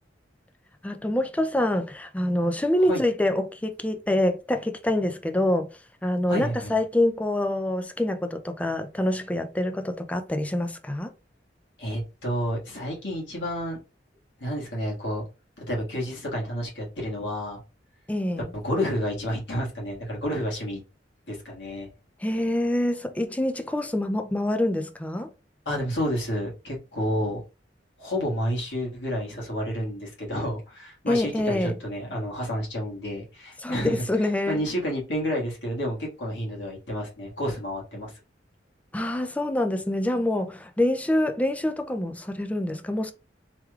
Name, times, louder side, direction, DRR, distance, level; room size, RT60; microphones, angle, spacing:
voice 1, 0.8-5.7 6.0-11.1 18.1-18.5 22.2-25.3 31.1-31.7 33.6-34.6 38.9-43.1, left 1 dB, 10° left, 0.4 m, -26 dB
voice 2, 6.3-6.7 11.8-13.8 14.4-15.2 15.7-17.6 18.5-20.8 21.3-21.9 25.6-27.4 28.0-38.1, equal, 75° left, 1.6 m, -30 dB
3.3 x 3.2 x 2.3 m
head